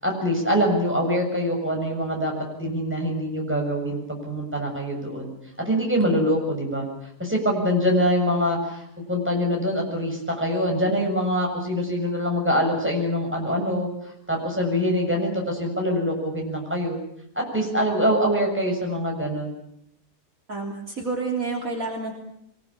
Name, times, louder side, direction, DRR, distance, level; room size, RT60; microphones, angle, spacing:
voice 1, 0.0-5.3 5.6-6.9 7.2-13.9 14.3-17.0 17.4-19.5, equal, 5° right, 0 dB, 7.2 m, -24 dB
voice 2, 20.5-22.1, right 3 dB, 55° right, 1 dB, 3.7 m, -29 dB
24.5 x 20.0 x 8.8 m, 0.74 s
omnidirectional pair, 1.7 m